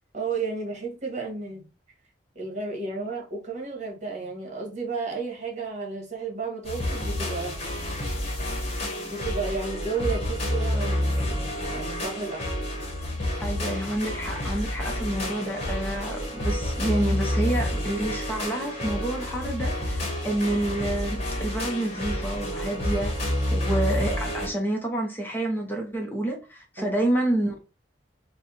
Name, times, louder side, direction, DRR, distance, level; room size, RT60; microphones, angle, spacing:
voice 1, 0.1-1.7 2.3-7.6 9.1-12.5 26.8-27.0, right 4 dB, 40° right, 1.3 m, -33 dB
sound 1, 6.6-24.5, left 1 dB, 35° left, 1.1 m, -29 dB
voice 2, 13.4-27.6, right 1 dB, 10° left, 0.7 m, -29 dB
3.3 x 2.2 x 4.1 m
head